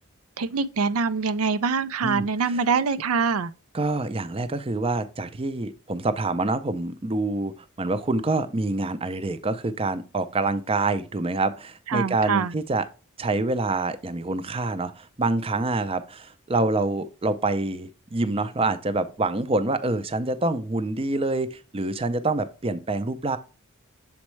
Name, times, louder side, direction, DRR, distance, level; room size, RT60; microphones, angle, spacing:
voice 1, 0.4-3.5 11.9-12.5, right 5 dB, 80° right, 0.5 m, -24 dB
voice 2, 3.7-12.8 13.2-23.4, right 2 dB, 25° right, 0.5 m, -26 dB
7.2 x 4.3 x 3.1 m
head